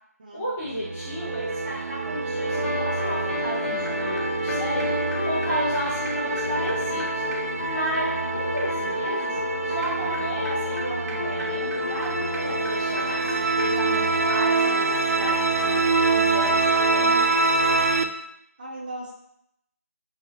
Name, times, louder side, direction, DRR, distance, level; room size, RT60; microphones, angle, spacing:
voice 1, 0.3-8.1 8.3-9.4 9.6-15.8 16.1-17.5, equal, 5° left, -10 dB, 0.4 m, -33 dB
sound 1, 0.7-18.0, right 4 dB, 65° right, 0.4 m, -26 dB
sound 2, 2.5-17.7, left 3 dB, 45° left, 0.7 m, -31 dB
sound 3, 3.5-3.6 3.9-4.0 4.2-4.3 4.5-4.6 4.8-4.9 5.1-5.2 5.4-5.5 5.7-5.8 6.0-13.3 13.6-13.7, equal, 85° right, 1.1 m, -43 dB
voice 2, 7.9-8.2 18.6-19.1, right 1 dB, 30° right, -1 dB, 0.6 m, -38 dB
4.1 x 3.3 x 2.3 m, 0.77 s
figure-of-eight pair, 170°, 9 cm